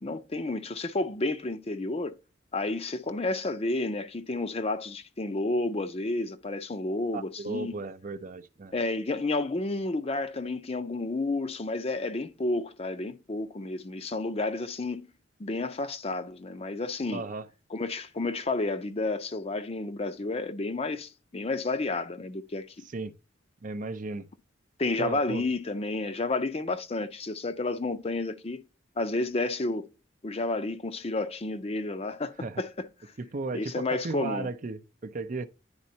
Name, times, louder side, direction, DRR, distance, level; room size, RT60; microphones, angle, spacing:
voice 1, 0.0-2.2 2.5-7.8 8.7-15.1 15.4-17.2 17.7-22.8 24.8-28.6 29.0-29.9 30.2-32.9 33.5-34.5, left 2 dB, 30° left, 0.6 m, -31 dB
voice 2, 7.1-8.7 17.1-17.5 22.9-23.1 23.6-24.3 25.0-25.4 32.4-32.6 33.2-35.5, right 3 dB, 40° right, 0.5 m, -35 dB
10.5 x 4.2 x 2.7 m
head